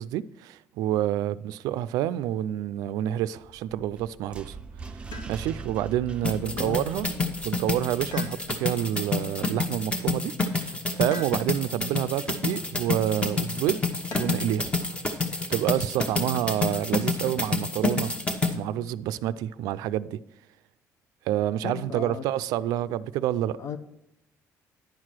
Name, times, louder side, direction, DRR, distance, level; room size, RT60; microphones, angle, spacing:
voice 1, 0.0-4.6 5.3-7.1 7.4-14.7 15.5-18.1 18.5-20.2 21.3-23.6, right 12 dB, 90° right, 0.4 m, -28 dB
sound 1, 3.4-8.6, right 5 dB, 15° right, 0.5 m, -42 dB
sound 2, 5.1-5.8 8.1-8.9 11.1-11.8 14.1-14.6 16.3-16.9, left 2 dB, 80° left, 1.1 m, -43 dB
voice 2, 6.2-7.3 21.6-22.2 23.6-23.8, left 7 dB, 60° left, 0.8 m, -37 dB
sound 3, 6.2-18.5, left 3 dB, 20° left, 1.0 m, -28 dB
10.5 x 4.8 x 6.0 m
cardioid pair, 120°, 6 cm